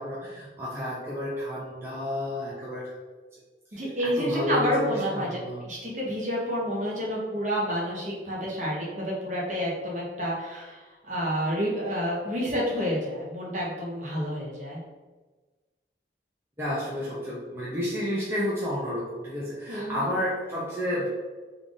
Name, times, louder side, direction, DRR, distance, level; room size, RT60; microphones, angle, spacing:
voice 1, 0.0-2.9 3.7-3.8 4.2-5.6 16.6-21.1, equal, 15° right, -7 dB, 0.6 m, -31 dB
voice 2, 3.7-5.3 5.6-14.8 19.7-20.1, equal, 45° right, -4 dB, 1.0 m, -29 dB
3.4 x 2.4 x 3.8 m, 1.3 s
head